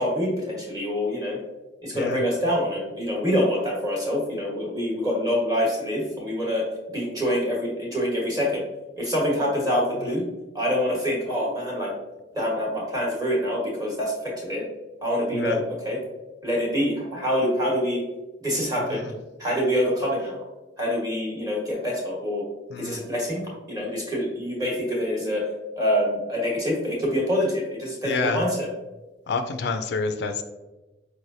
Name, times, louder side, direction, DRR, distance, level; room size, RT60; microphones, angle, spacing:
voice 1, 0.0-1.4 1.8-6.7 6.9-8.6 9.0-10.2 10.5-11.9 12.3-14.6 15.0-16.0 16.4-18.0 18.4-19.1 19.4-20.4 20.8-22.4 22.8-23.4 23.7-25.4 25.8-28.7, equal, 20° right, -3 dB, 1.1 m, -25 dB
voice 2, 22.7-23.0 28.0-28.4 29.3-30.4, left 4 dB, 60° left, 8 dB, 0.3 m, -28 dB
4.6 x 3.1 x 2.6 m, 1.1 s
head